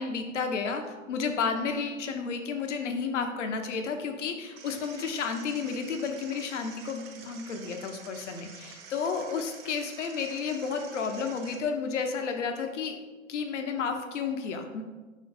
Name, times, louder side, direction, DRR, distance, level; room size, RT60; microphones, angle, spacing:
voice 1, 0.0-13.0 13.3-14.8, left 5 dB, 60° left, 5 dB, 0.9 m, -32 dB
sound 1, 4.6-11.6, right 6 dB, 25° right, 0.8 m, -48 dB
5.8 x 4.6 x 4.7 m, 1.2 s
figure-of-eight pair, 120°, 40 cm